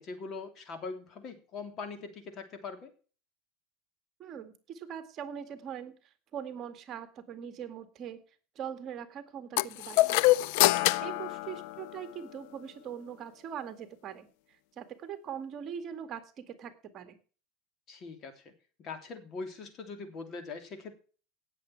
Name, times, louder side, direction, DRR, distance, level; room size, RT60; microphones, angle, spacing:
voice 1, 0.0-2.9 10.8-11.1 17.9-18.5 18.8-20.9, left 4 dB, 40° left, 7 dB, 3.3 m, -42 dB
voice 2, 4.2-5.9 6.3-8.2 8.6-10.4 11.0-14.3 14.8-17.2, right 8 dB, 40° right, 9 dB, 2.0 m, -41 dB
sound 1, 9.6-12.2, left 18 dB, 70° left, 0.5 m, -26 dB
17.5 x 7.5 x 4.7 m, 0.39 s
supercardioid pair, 130°, 0 cm